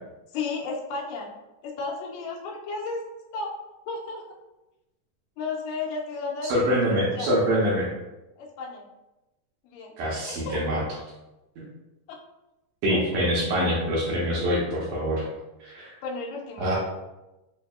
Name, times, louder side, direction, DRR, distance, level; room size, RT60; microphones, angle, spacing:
voice 1, 0.3-1.3 1.6-3.0 3.3-3.5 3.9-4.2 5.4-6.6 7.2-7.3 8.4-8.9 9.7-9.9 10.3-10.8 12.1-12.2 12.9-13.0 16.0-16.8, left 4 dB, 90° left, -2 dB, 2.3 m, -33 dB
voice 2, 6.4-7.9 10.0-10.8 11.6-11.7 12.8-15.2 15.6-15.9 16.6-16.8, equal, 75° right, -5 dB, 2.1 m, -25 dB
5.3 x 2.6 x 2.3 m, 1.0 s
omnidirectional pair, 3.9 m